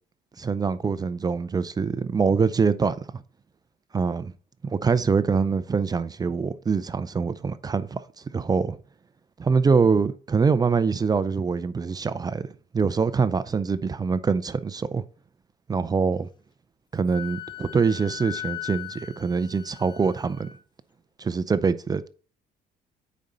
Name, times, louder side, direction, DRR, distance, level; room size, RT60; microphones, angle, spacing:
voice 1, 0.4-3.2 3.9-4.3 4.6-8.0 8.3-8.8 9.4-12.5 12.7-15.0 15.7-16.3 16.9-20.5 21.2-22.1, right 5 dB, 25° right, 0.5 m, -24 dB
Wind instrument woodwind instrument, 17.1-20.6, left 14 dB, 25° left, 0.7 m, -38 dB
8.4 x 5.2 x 3.9 m
cardioid pair, 110°, 17 cm